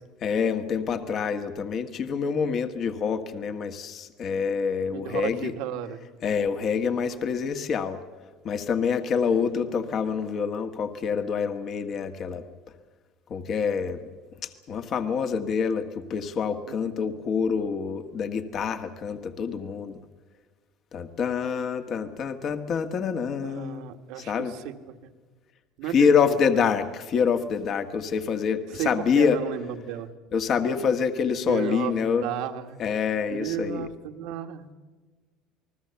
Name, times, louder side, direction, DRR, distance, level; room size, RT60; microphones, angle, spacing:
voice 1, 0.2-5.5 6.2-8.0 8.4-12.4 13.3-14.0 14.4-20.0 20.9-23.9 24.2-24.5 25.8-29.4 30.3-32.2 32.8-33.9, left 6 dB, 45° left, 7 dB, 1.6 m, -26 dB
voice 2, 4.9-6.0 23.4-24.3 24.6-24.7 25.8-26.7 28.7-30.1 31.4-31.9 32.2-32.8 33.3-34.7, right 10 dB, 75° right, 6 dB, 1.7 m, -33 dB
29.0 x 20.0 x 7.0 m, 1.3 s
supercardioid pair, 115°, 0 cm